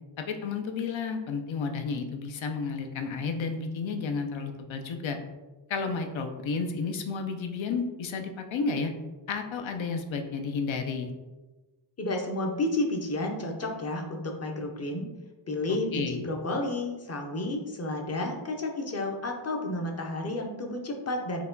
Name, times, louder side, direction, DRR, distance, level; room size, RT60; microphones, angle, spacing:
voice 1, 0.2-5.2 5.7-8.9 9.3-11.1 15.9-16.2, left 4 dB, 75° left, 5 dB, 0.6 m, -32 dB
voice 2, 12.0-15.1 15.5-21.5, left 2 dB, 35° left, 2 dB, 0.6 m, -31 dB
4.6 x 2.2 x 3.8 m, 1.2 s
wide cardioid pair, 135°, 47 cm